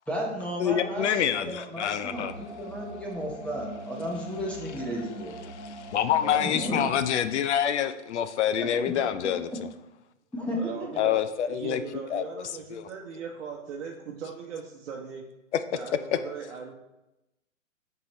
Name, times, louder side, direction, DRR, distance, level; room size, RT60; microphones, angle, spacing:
voice 1, 0.1-5.3 6.4-6.9 8.6-9.0 9.5-9.6 10.3-11.0, equal, 5° left, -3 dB, 0.8 m, -34 dB
voice 2, 0.6-2.3 5.9-9.5 11.0-11.8 12.1-12.2 12.7-12.9 15.5-15.6, left 9 dB, 60° left, 11 dB, 0.5 m, -26 dB
sound 1, 1.8-7.1, right 1 dB, 15° right, 2.0 m, -42 dB
voice 3, 6.2-6.8 10.5-11.2 11.5-15.2 15.7-16.7, right 6 dB, 60° right, 0 dB, 0.9 m, -39 dB
8.2 x 4.6 x 3.0 m, 0.96 s
hypercardioid pair, 120°, 39 cm